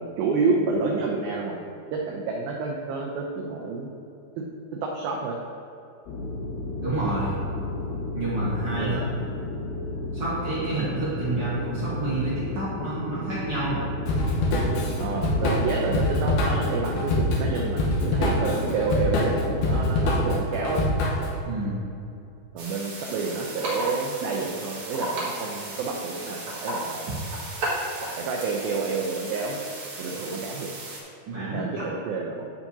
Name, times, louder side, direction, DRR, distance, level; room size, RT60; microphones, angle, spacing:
voice 1, 0.0-1.7 1.9-3.9 4.4-4.5 4.8-5.4 8.8-9.1 15.0-20.8 22.5-27.1 28.2-29.6 30.0-30.7 31.4-32.5, right 4 dB, 90° right, -1 dB, 2.0 m, -29 dB
sound 1, 6.1-20.4, left 2 dB, 90° left, 3.1 m, -32 dB
voice 2, 6.8-7.4 8.1-9.4 10.1-13.9 21.4-21.8 31.3-31.9, right 2 dB, 70° right, -10 dB, 1.4 m, -29 dB
Drum kit / Drum, 14.1-21.4, left 1 dB, 70° left, 2.7 m, -25 dB
sound 2, 22.6-31.0, right 2 dB, 50° right, 2.4 m, -34 dB
11.5 x 7.1 x 2.8 m, 2.7 s
omnidirectional pair, 5.0 m